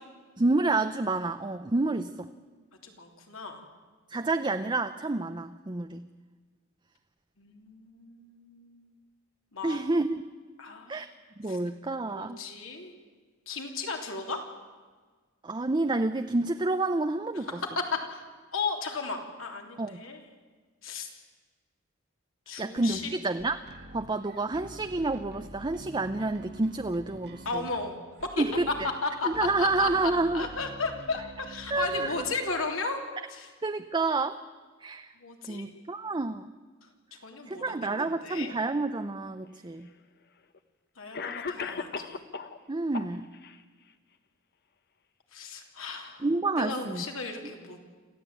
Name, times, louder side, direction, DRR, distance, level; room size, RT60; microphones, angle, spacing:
voice 1, 0.4-2.3 4.1-6.0 9.6-10.3 10.9-11.1 11.4-12.4 15.4-17.6 19.8-20.0 22.6-27.6 28.4-28.7 29.2-30.5 31.7-32.1 33.6-34.4 34.8-35.1 35.5-36.5 37.5-39.9 42.7-43.3 46.2-47.0, right 2 dB, 25° right, 9 dB, 0.6 m, -29 dB
voice 2, 2.8-3.6 7.4-8.9 9.5-9.8 10.6-11.0 11.5-11.6 12.1-12.9 13.5-14.4 17.4-18.2 18.5-20.2 20.8-21.1 22.5-23.2 27.5-28.7 29.0-29.3 29.6-29.9 30.3-33.0 33.3-33.5 35.2-35.7 37.1-38.5 41.0-42.2 45.3-46.3 46.6-47.8, left 3 dB, 75° left, 2 dB, 3.4 m, -35 dB
sound 1, 22.8-32.4, right 1 dB, 55° right, 1.7 m, -48 dB
Cough, 39.4-39.5 40.5-40.6 41.1-42.6 42.9-43.6, left 5 dB, 55° left, 1.2 m, -36 dB
27.0 x 15.0 x 9.0 m, 1.4 s
head